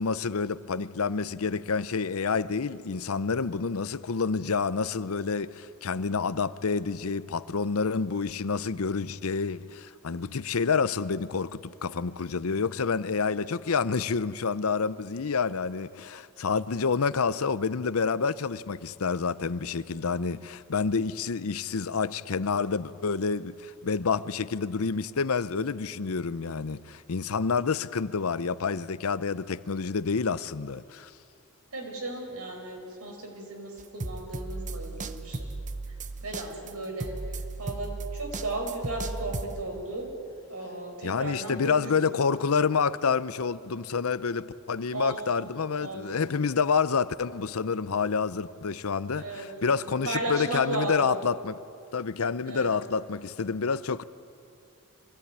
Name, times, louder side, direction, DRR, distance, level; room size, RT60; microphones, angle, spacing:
voice 1, 0.0-31.1 41.0-51.6 51.9-54.0, left 5 dB, 70° left, 0.6 m, -28 dB
voice 2, 31.7-35.5 36.2-37.1 37.6-40.1 40.5-42.1 44.9-45.5 45.8-46.3 49.1-51.2 52.5-52.7, right 2 dB, 80° right, 5.2 m, -35 dB
sound 1, 33.8-39.6, right 2 dB, 35° right, 0.8 m, -36 dB
24.5 x 17.5 x 9.6 m
head